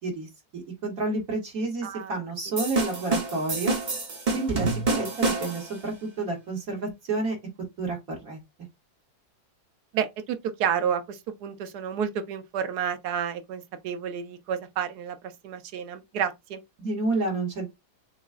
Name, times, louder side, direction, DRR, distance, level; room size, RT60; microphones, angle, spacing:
voice 1, 0.0-3.8 4.3-7.4 7.8-8.4 16.8-17.7, right 3 dB, 60° right, 2.1 m, -30 dB
voice 2, 1.8-2.1 4.6-5.0 9.9-15.2 15.4-16.6, right 8 dB, 75° right, 1.2 m, -30 dB
sound 1, 2.6-5.8, right 3 dB, 30° right, 1.0 m, -27 dB
7.0 x 2.3 x 2.4 m
omnidirectional pair, 1.7 m